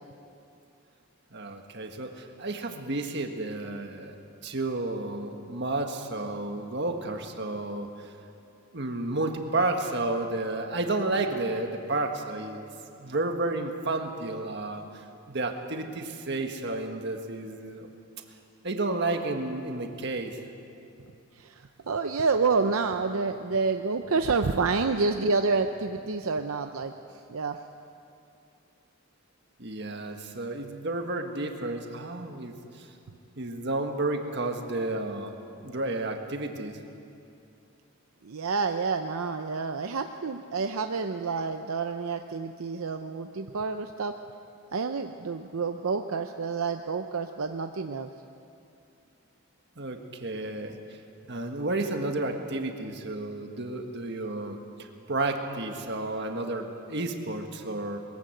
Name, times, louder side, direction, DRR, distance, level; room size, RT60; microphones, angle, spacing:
voice 1, 1.3-4.2 4.4-8.1 8.7-12.7 13.0-17.9 18.6-20.4 29.6-32.9 33.4-35.3 35.6-36.8 49.8-50.8 51.3-58.0, right 2 dB, 50° right, 4 dB, 1.6 m, -31 dB
voice 2, 21.4-26.9 27.3-27.6 38.2-44.1 44.7-48.1, right 4 dB, 75° right, 6 dB, 0.7 m, -28 dB
22.0 x 15.0 x 7.9 m, 2.6 s
head